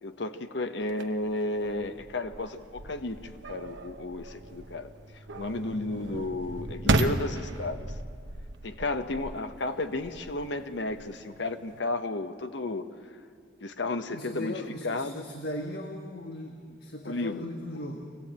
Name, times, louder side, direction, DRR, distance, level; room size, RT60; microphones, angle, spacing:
voice 1, 0.0-4.9 5.3-8.0 8.6-12.9 13.6-14.5 14.8-15.3 17.0-17.5, left 2 dB, 80° left, 8 dB, 1.2 m, -33 dB
sound 1, 0.8-11.8, right 2 dB, 90° right, 1.0 m, -35 dB
voice 2, 14.1-18.1, left 1 dB, 60° left, 3 dB, 1.5 m, -38 dB
25.0 x 16.5 x 8.8 m, 2.3 s
head